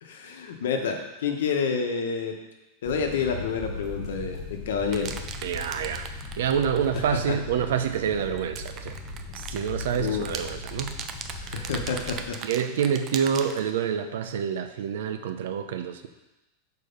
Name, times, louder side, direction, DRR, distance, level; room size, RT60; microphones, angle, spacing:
voice 1, 0.0-2.4 2.8-5.1 6.9-7.4 10.0-10.4 11.4-12.4, left 5 dB, 85° left, 4 dB, 1.1 m, -29 dB
sound 1, 2.8-12.3, left 3 dB, 15° left, 1.1 m, -38 dB
sound 2, 4.9-6.9 8.4-13.7, right 6 dB, 25° right, 0.4 m, -38 dB
voice 2, 5.4-6.1 6.4-9.0 9.3-11.0 11.5-11.6 12.4-16.1, right 8 dB, 70° right, 8 dB, 0.6 m, -27 dB
6.6 x 4.5 x 5.2 m, 1.0 s
supercardioid pair, 175°, 0 cm